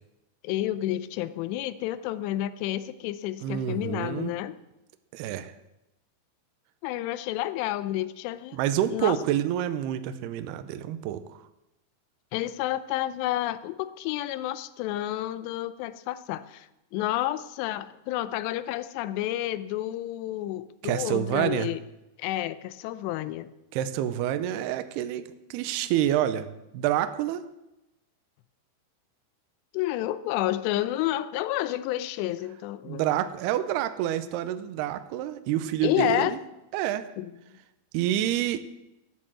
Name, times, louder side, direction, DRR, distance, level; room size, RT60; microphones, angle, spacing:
voice 1, 0.4-4.6 6.8-8.6 8.9-9.2 12.3-16.7 16.9-21.8 22.2-23.5 29.7-33.0 35.8-36.3 37.2-37.3, left 14 dB, 80° left, 14 dB, 2.6 m, -30 dB
voice 2, 3.4-4.3 5.1-5.5 8.5-11.4 20.8-21.7 23.7-26.5 26.7-27.4 32.8-36.4 36.7-37.1 37.9-38.6, right 12 dB, 85° right, 10 dB, 2.3 m, -28 dB
13.5 x 9.9 x 7.6 m, 0.93 s
omnidirectional pair, 5.5 m